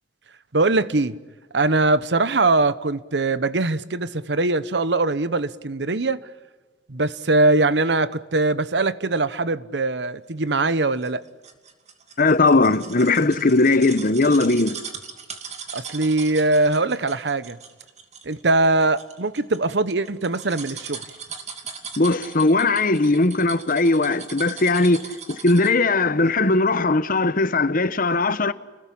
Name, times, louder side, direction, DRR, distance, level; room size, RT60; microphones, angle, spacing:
voice 1, 0.5-1.2 1.5-6.3 6.9-11.2 15.7-17.6 18.2-21.0, right 2 dB, 70° right, 1.0 m, -21 dB
sound 1, 10.7-25.9 26.2-26.3, right 6 dB, 40° right, 2.8 m, -39 dB
voice 2, 12.2-14.8 22.0-25.0 25.3-28.5, left 3 dB, 50° left, 1.1 m, -19 dB
29.5 x 20.5 x 8.7 m
head